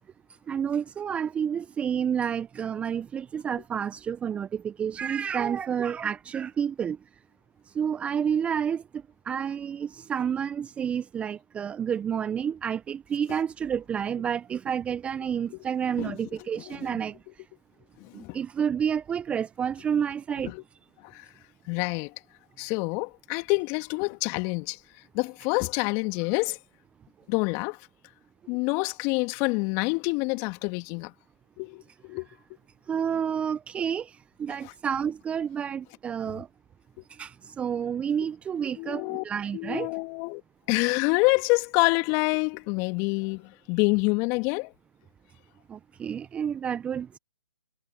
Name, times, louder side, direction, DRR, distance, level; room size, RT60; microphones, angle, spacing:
voice 1, 0.5-7.0 7.7-8.8 9.2-17.2 18.1-20.5 32.9-36.5 37.1-39.9 45.7-47.2, right 8 dB, 10° right, 0.9 m, -29 dB
voice 2, 16.0-17.0 18.0-18.4 20.4-20.6 21.0-21.3 21.7-22.1 22.6-24.8 25.1-26.6 27.3-27.8 28.5-31.1 31.6-32.3 34.6-34.7 38.8-39.2 39.5-40.4 40.7-44.7, left 29 dB, 25° left, 2.1 m, -27 dB
figure-of-eight pair, 135°, 12 cm